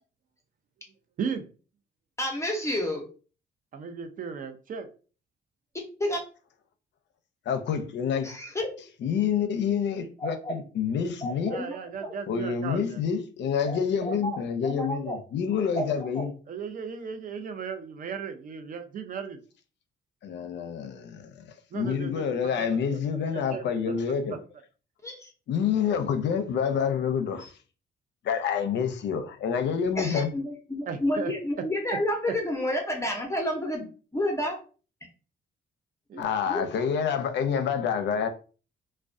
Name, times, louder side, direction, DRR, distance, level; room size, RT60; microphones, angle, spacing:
voice 1, 2.2-3.0 6.0-6.2 8.2-8.7 10.2-10.5 11.2-11.8 12.0-12.1 13.7-14.4 14.6-15.2 15.7-16.2 25.0-25.3 27.4-27.5 30.0-33.8 34.1-34.6 36.1-36.6, left 1 dB, 15° left, 0.7 m, -30 dB
voice 2, 3.7-4.9 11.5-13.0 16.5-19.4 21.7-22.3 22.9-23.0 23.3-24.0 24.3-24.4 30.9-31.3 36.1-36.3, right 6 dB, 45° right, 0.5 m, -36 dB
voice 3, 7.5-8.3 9.0-11.5 12.3-16.3 20.2-21.4 21.7-24.4 25.5-27.5 28.2-30.3 36.2-38.3, left 7 dB, 65° left, 0.5 m, -27 dB
2.3 x 2.1 x 2.5 m
cardioid pair, 90°, 20 cm